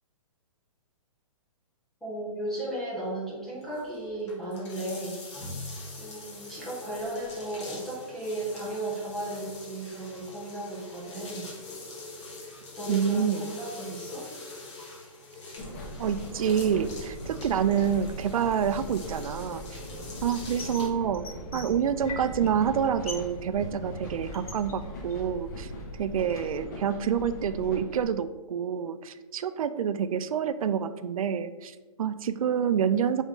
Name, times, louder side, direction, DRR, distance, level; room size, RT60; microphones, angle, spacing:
voice 1, 2.0-5.2 6.0-11.5 12.4-14.3, right 1 dB, ahead, -8 dB, 0.4 m, -35 dB
sound 1, 3.6-20.9, left 2 dB, 55° left, 1.2 m, -43 dB
voice 2, 12.9-13.5 16.0-19.6 20.2-21.3 21.5-25.7 26.0-33.2, right 8 dB, 75° right, 12 dB, 0.4 m, -27 dB
sound 2, 15.6-28.1, equal, 30° left, 0.7 m, -40 dB
sound 3, 20.3-20.9 21.1-22.5 22.8-23.4 23.6-25.4 25.8-26.6, left 3 dB, 85° left, 1.1 m, -43 dB
3.7 x 3.5 x 4.1 m, 1.2 s
hypercardioid pair, 170°, 18 cm